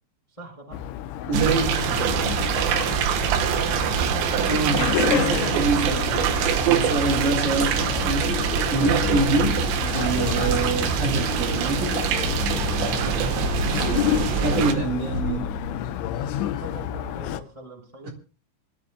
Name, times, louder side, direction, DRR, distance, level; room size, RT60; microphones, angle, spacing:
voice 1, 0.3-0.8 2.5-4.6 5.8-5.9 12.7-13.4 16.6-18.1, right 3 dB, 10° left, 2.8 m, -40 dB
sound 1, 0.7-17.4, left 12 dB, 90° left, 3.2 m, -30 dB
voice 2, 1.3-1.9 4.4-6.0 6.5-12.0 13.8-15.5 18.0-18.1, right 3 dB, 50° right, 2.7 m, -26 dB
sound 2, 1.3-14.7, right 8 dB, 80° right, 3.4 m, -24 dB
sound 3, 9.0-11.1 12.2-16.6, left 4 dB, 60° left, 4.1 m, -33 dB
24.5 x 13.0 x 2.3 m
omnidirectional pair, 5.3 m